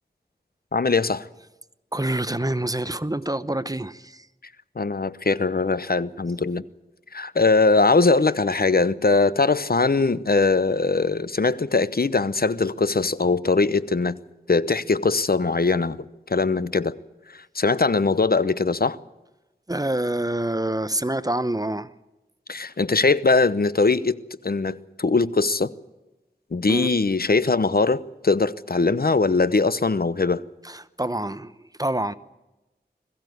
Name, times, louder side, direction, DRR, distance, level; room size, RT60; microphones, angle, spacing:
voice 1, 0.7-1.3 4.8-6.6 7.1-14.2 14.5-16.0 16.3-16.9 17.3-19.0 22.5-24.2 24.4-25.7 26.5-30.4, left 3 dB, 60° left, 0.8 m, -21 dB
voice 2, 1.9-4.3 19.7-21.9 26.7-26.9 30.6-32.1, right 1 dB, 20° right, 0.8 m, -27 dB
21.5 x 15.0 x 9.4 m
wide cardioid pair, 45°, 17 cm